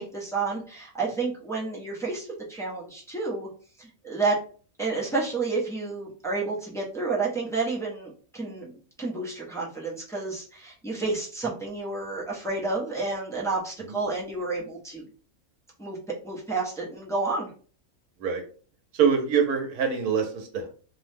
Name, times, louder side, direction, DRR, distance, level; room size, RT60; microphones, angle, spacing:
voice 1, 0.0-3.5 3.8-4.4 4.8-8.7 9.0-15.0 15.8-16.0 16.2-17.5, right 3 dB, 5° left, -5 dB, 0.4 m, -30 dB
voice 2, 18.9-20.7, right 6 dB, 85° right, 4 dB, 1.2 m, -24 dB
3.0 x 2.1 x 3.2 m, 0.41 s
omnidirectional pair, 1.6 m